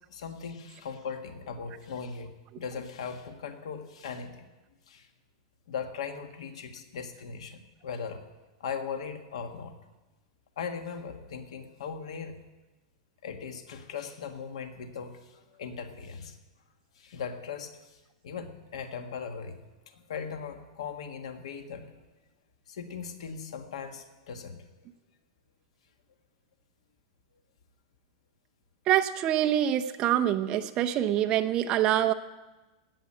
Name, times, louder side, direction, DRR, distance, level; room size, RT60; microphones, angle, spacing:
voice 1, 0.1-2.3 2.6-4.4 4.9-5.1 5.7-8.2 8.6-9.7 10.6-12.4 13.2-16.4 17.0-17.8 18.2-19.6 19.9-21.9 22.7-24.7, left 6 dB, 85° left, 6 dB, 1.7 m, -39 dB
voice 2, 28.9-32.1, right 11 dB, 25° right, 6 dB, 0.7 m, -25 dB
17.5 x 6.2 x 8.8 m, 1.1 s
supercardioid pair, 170°, 3 cm